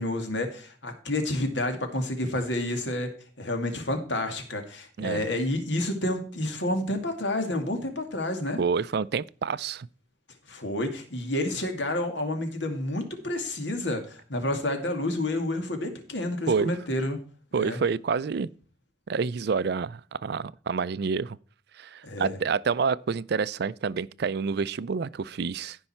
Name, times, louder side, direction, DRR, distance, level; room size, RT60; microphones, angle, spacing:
voice 1, 0.0-3.1 3.4-8.6 10.5-17.2 17.5-17.8 22.0-22.4, left 1 dB, 75° left, 2.4 m, -29 dB
voice 2, 8.6-9.9 16.5-16.7 17.5-18.5 19.1-21.4 21.8-25.8, right 5 dB, 60° right, 0.4 m, -28 dB
15.5 x 5.5 x 4.4 m
head